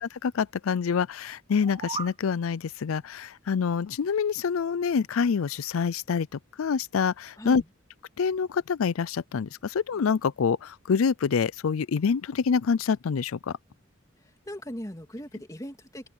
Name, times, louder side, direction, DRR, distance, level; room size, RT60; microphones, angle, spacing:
voice 1, 0.0-6.3 6.6-7.6 8.2-13.4, left 6 dB, 85° left, 0.4 m, -26 dB
sound 1, 1.5-2.2, right 5 dB, 25° right, 3.6 m, -36 dB
voice 2, 14.2-16.1, equal, 15° left, 2.9 m, -39 dB
open air
head